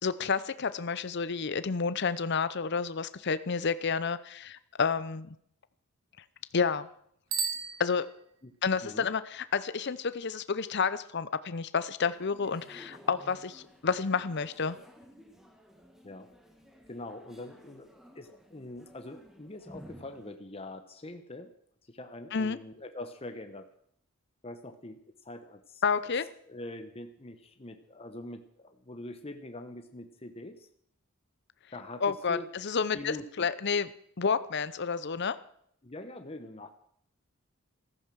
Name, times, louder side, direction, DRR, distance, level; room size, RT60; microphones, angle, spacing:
voice 1, 0.0-5.3 6.5-6.9 7.8-8.1 8.6-14.8 22.3-22.6 25.8-26.3 32.0-33.9 34.2-35.4, left 5 dB, 55° left, 14 dB, 0.7 m, -30 dB
Bicycle bell, 7.3-8.6, right 6 dB, 75° right, 1.8 m, -35 dB
sound 1, 12.1-20.4, equal, ahead, 1.8 m, -54 dB
voice 2, 16.9-21.5 21.9-23.7 24.4-25.8 26.5-30.7 31.7-32.5 32.9-33.5 35.8-36.7, left 1 dB, 30° left, 7 dB, 1.0 m, -44 dB
14.5 x 14.0 x 6.3 m, 0.67 s
head